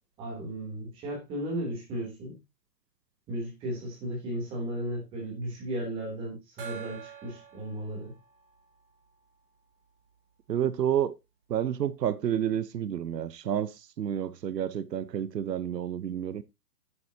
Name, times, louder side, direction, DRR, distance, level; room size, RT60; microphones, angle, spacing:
voice 1, 0.2-2.3 3.3-8.1, right 1 dB, 10° right, 3.1 m, -35 dB
Gong, 6.6-9.8, right 8 dB, 35° right, 2.8 m, -47 dB
voice 2, 10.5-11.1 11.5-13.7 14.0-16.4, right 10 dB, 90° right, 1.0 m, -29 dB
9.8 x 9.2 x 2.8 m
hypercardioid pair, 180°, 48 cm